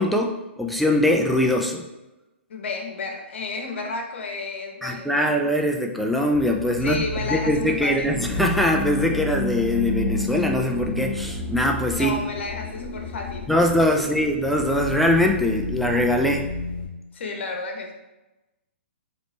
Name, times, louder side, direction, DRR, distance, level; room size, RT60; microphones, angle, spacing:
voice 1, 0.0-1.9 4.8-7.0 7.3-12.2 13.5-16.5, left 1 dB, ahead, 1 dB, 0.3 m, -22 dB
voice 2, 2.5-5.3 6.8-8.2 11.9-13.5 14.0-14.1 17.1-17.9, left 3 dB, 70° left, 3 dB, 1.0 m, -31 dB
sound 1, 6.3-16.9, left 2 dB, 15° left, 1.4 m, -30 dB
4.1 x 3.1 x 3.2 m, 1.0 s
hypercardioid pair, 140°, 7 cm